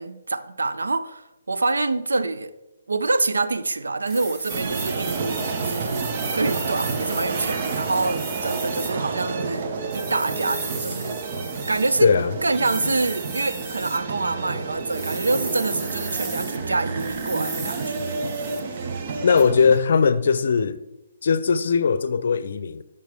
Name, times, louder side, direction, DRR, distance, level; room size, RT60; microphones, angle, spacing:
voice 1, 0.0-2.5 2.9-9.7 9.9-11.2 11.7-12.1 12.4-18.2, right 3 dB, 90° right, 0.6 m, -26 dB
sound 1, 4.1-8.9 9.9-12.0 12.5-14.0 14.9-16.6 17.0-18.7 19.4-19.5, right 4 dB, 20° right, 1.0 m, -36 dB
sound 2, 4.5-19.8, right 4 dB, 45° right, 0.9 m, -30 dB
voice 2, 12.0-12.3 19.2-20.8 21.2-22.8, left 5 dB, 65° left, 0.5 m, -19 dB
13.0 x 5.5 x 3.5 m
hypercardioid pair, 145°, 0 cm